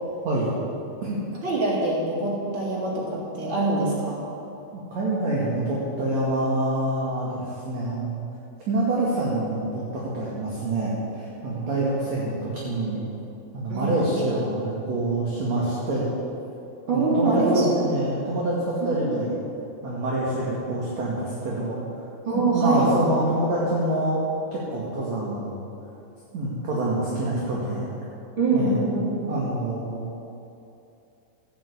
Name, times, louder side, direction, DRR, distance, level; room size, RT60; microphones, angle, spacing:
voice 1, 1.4-4.2 13.7-14.0 16.9-17.6 18.8-18.9 22.2-22.9 28.4-29.2, right 3 dB, 30° right, -5 dB, 3.4 m, -24 dB
voice 2, 4.7-8.2 8.7-13.0 13.5-16.1 16.9-19.3 19.8-21.8 22.3-24.2 24.5-25.6 26.3-27.9 28.5-28.8 29.3-30.0, right 1 dB, 45° right, -5 dB, 2.5 m, -26 dB
14.0 x 9.8 x 8.4 m, 2.7 s
omnidirectional pair, 5.5 m